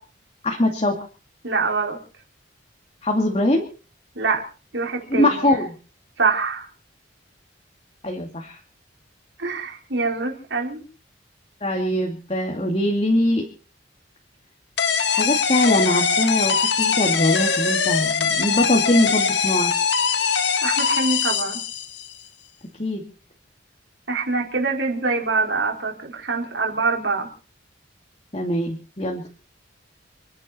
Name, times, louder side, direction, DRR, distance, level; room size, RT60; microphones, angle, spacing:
voice 1, 0.4-1.0 3.0-3.7 5.1-5.7 8.0-8.6 11.6-13.4 15.1-19.7 22.8-23.0 28.3-29.2, left 1 dB, 30° left, 1 dB, 2.4 m, -22 dB
voice 2, 1.4-2.0 4.1-4.4 4.7-5.6 6.2-6.7 9.4-10.8 20.6-21.6 24.1-27.3, right 4 dB, 65° right, 1 dB, 4.9 m, -24 dB
sound 1, 14.8-22.1, left 6 dB, 65° left, 1.7 m, -22 dB
29.0 x 10.5 x 4.3 m, 0.38 s
head